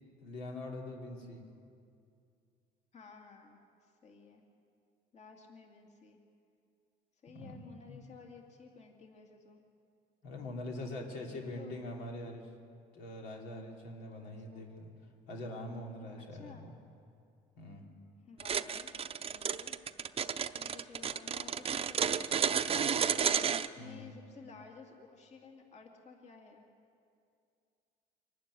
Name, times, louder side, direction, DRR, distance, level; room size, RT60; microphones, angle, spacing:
voice 1, 0.2-1.4 7.3-7.6 7.9-8.0 10.2-12.5 12.9-14.9 15.3-16.7 17.6-17.8 23.8-24.1, left 1 dB, 85° left, 0 dB, 3.2 m, -43 dB
voice 2, 2.9-4.4 5.1-6.2 7.2-9.6 10.9-11.9 14.2-14.7 16.3-16.7 18.3-18.9 19.2-19.8 20.5-23.5 23.7-26.7, left 5 dB, 40° left, 2 dB, 2.4 m, -54 dB
sound 1, 18.4-23.7, right 7 dB, 35° right, 0.7 m, -32 dB
24.5 x 12.0 x 9.9 m, 2.4 s
cardioid pair, 110°, 17 cm